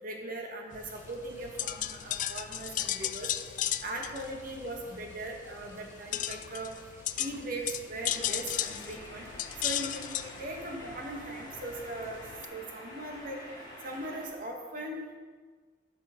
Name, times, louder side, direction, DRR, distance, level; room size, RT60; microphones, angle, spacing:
voice 1, 0.0-3.3 3.8-6.7 7.2-9.3 9.6-12.2 12.5-13.4 13.8-15.2, right 1 dB, 50° right, 1 dB, 1.4 m, -39 dB
sound 1, 0.7-12.5, left 12 dB, 45° left, 0.3 m, -36 dB
sound 2, 0.8-10.8, right 1 dB, 15° right, 0.9 m, -57 dB
sound 3, 8.0-14.3, left 1 dB, 25° left, 2.5 m, -47 dB
12.5 x 5.9 x 3.7 m, 1.5 s
head